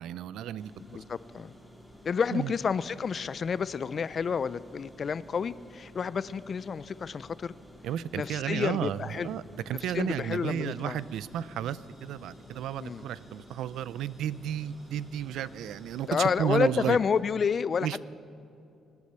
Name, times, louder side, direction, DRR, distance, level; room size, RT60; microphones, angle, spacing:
voice 1, 0.0-1.0 2.3-2.5 7.8-17.0 17.8-18.0, right 10 dB, 85° right, 18 dB, 0.4 m, -33 dB
sound 1, 0.6-17.2, equal, 5° right, 2.3 m, -52 dB
voice 2, 0.9-1.5 2.0-7.5 8.1-9.3 9.9-11.0 12.8-13.0 16.1-18.0, left 6 dB, 45° left, 17 dB, 0.4 m, -30 dB
sound 2, 10.7-17.0, right 1 dB, 60° right, 4.3 m, -66 dB
24.5 x 8.3 x 6.8 m, 2.6 s
cardioid pair, 90°, 0 cm